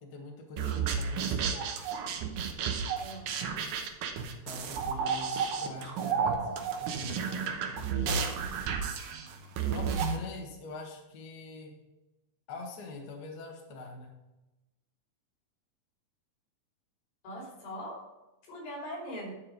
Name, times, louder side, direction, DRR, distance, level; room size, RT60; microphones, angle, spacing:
voice 1, 0.0-1.5 4.4-8.2 9.7-11.8 12.5-14.1, left 2 dB, 50° left, 1 dB, 1.2 m, -44 dB
sound 1, 0.6-10.2, right 6 dB, 75° right, 2.5 m, -32 dB
voice 2, 3.0-3.3 17.2-18.0 18.4-19.3, equal, 85° left, -2 dB, 4.7 m, -41 dB
11.0 x 4.8 x 5.1 m, 1.0 s
omnidirectional pair, 4.0 m